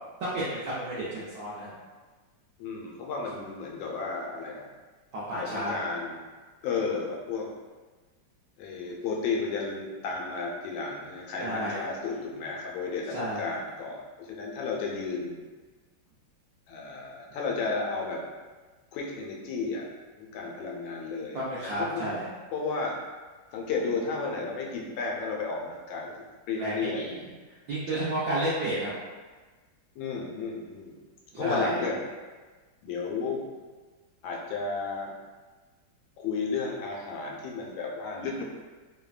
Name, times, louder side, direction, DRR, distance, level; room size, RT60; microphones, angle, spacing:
voice 1, 0.2-1.7 5.1-5.8 11.4-11.8 13.1-13.5 21.3-22.2 26.6-27.2 27.7-29.0 31.3-31.8, right 1 dB, 70° right, -9 dB, 0.8 m, -31 dB
voice 2, 2.6-4.7 5.3-6.2 6.6-7.5 8.6-15.4 16.7-18.2 18.9-19.8 20.2-22.1 22.5-23.0 23.5-27.1 27.9-28.1 30.0-30.9 31.4-32.0 32.8-33.4 34.2-35.1 36.2-38.4, left 4 dB, 90° left, -1 dB, 1.3 m, -33 dB
3.2 x 2.1 x 2.3 m, 1.3 s
omnidirectional pair, 2.1 m